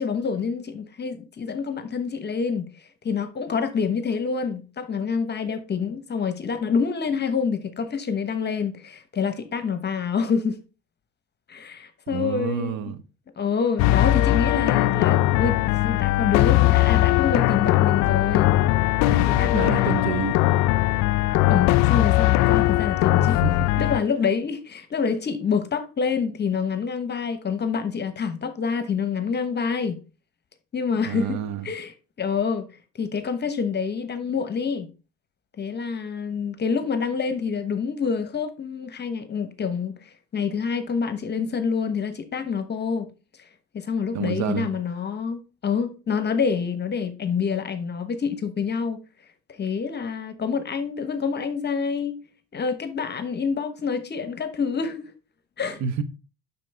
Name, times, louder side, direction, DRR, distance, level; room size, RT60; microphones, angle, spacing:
voice 1, 0.0-2.7 3.0-10.6 11.5-12.7 13.4-18.5 19.0-20.2 21.5-23.4 23.8-30.0 30.7-31.9 32.2-32.6 32.9-34.9 35.6-39.9 40.3-43.1 43.7-49.0 49.5-52.2 52.5-55.1 55.6-55.8, left 6 dB, 35° left, 1.1 m, -27 dB
voice 2, 12.1-13.0 19.1-20.4 23.2-23.8 31.0-31.7 44.1-44.7 55.8-56.0, right 8 dB, 65° right, 1.0 m, -29 dB
sound 1, 13.8-24.0, left 16 dB, 70° left, 0.4 m, -20 dB
7.4 x 6.0 x 3.4 m
supercardioid pair, 85°, 30 cm